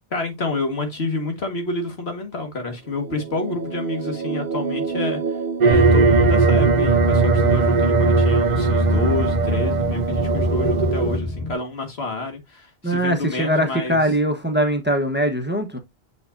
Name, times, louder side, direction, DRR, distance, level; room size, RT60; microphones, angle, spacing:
voice 1, 0.1-5.2 5.6-14.0, left 2 dB, 80° left, 1.9 m, -28 dB
sound 1, 2.8-6.7, right 5 dB, 65° right, 1.0 m, -29 dB
sound 2, 5.6-11.2, right 6 dB, 50° right, 0.7 m, -19 dB
sound 3, 5.7-11.5, left 1 dB, 20° left, 3.5 m, -22 dB
voice 2, 12.8-15.8, right 1 dB, 10° right, 1.0 m, -21 dB
7.3 x 5.7 x 2.6 m
omnidirectional pair, 1.1 m